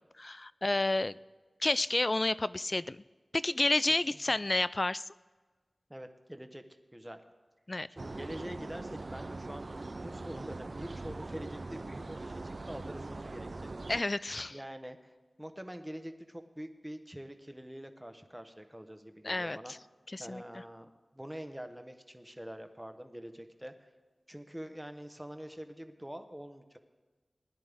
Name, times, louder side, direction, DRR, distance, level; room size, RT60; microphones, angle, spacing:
voice 1, 0.2-1.2 1.6-3.0 3.3-5.0 7.7-7.9 13.9-14.6 19.2-19.6 20.1-20.4, left 2 dB, 40° left, 17 dB, 0.3 m, -30 dB
voice 2, 5.9-6.6 6.9-7.2 7.9-13.7 14.5-15.1 15.4-19.7 20.2-20.9 21.1-23.9 24.3-26.8, equal, 10° right, 7 dB, 1.1 m, -45 dB
sound 1, 8.0-14.0, right 2 dB, 55° right, 0.4 m, -42 dB
20.0 x 10.5 x 3.5 m, 1.3 s
wide cardioid pair, 55°, 0 cm